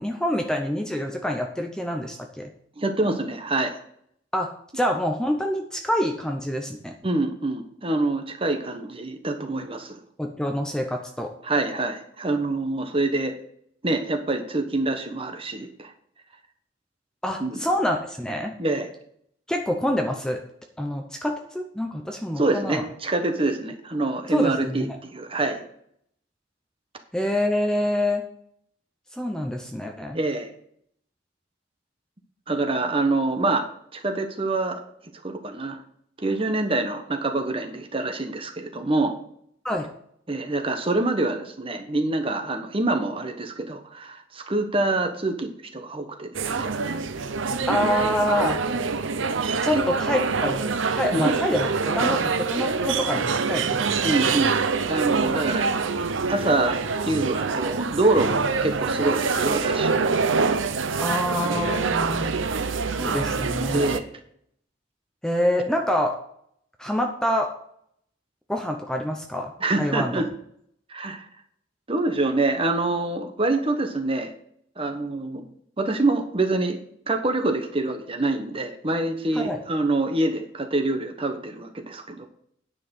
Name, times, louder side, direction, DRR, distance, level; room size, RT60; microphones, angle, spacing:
voice 1, 0.0-2.5 4.3-6.9 10.2-11.3 17.2-18.5 19.5-20.4 20.8-22.8 24.3-25.0 27.1-28.2 29.1-30.2 39.6-39.9 47.7-48.6 49.6-54.1 61.0-62.4 62.9-63.9 65.2-66.2 66.8-67.5 68.5-69.5 69.8-70.1 79.3-79.6, left 1 dB, 5° left, 3 dB, 0.8 m, -26 dB
voice 2, 2.8-3.8 7.0-10.0 11.4-13.3 13.8-15.9 17.4-17.6 18.6-18.9 22.4-25.6 30.1-30.5 32.5-33.7 33.9-34.8 35.2-35.8 36.2-39.1 40.3-46.8 49.7-49.8 51.1-51.3 54.0-54.6 54.9-55.8 56.3-56.8 57.0-60.1 63.7-64.0 69.6-70.3 70.9-71.3 71.9-74.3 74.8-75.5 75.8-76.8 77.1-82.3, right 2 dB, 30° right, 6 dB, 1.2 m, -26 dB
sound 1, 46.3-64.0, right 4 dB, 80° right, 0.7 m, -25 dB
9.8 x 5.7 x 6.5 m, 0.67 s
head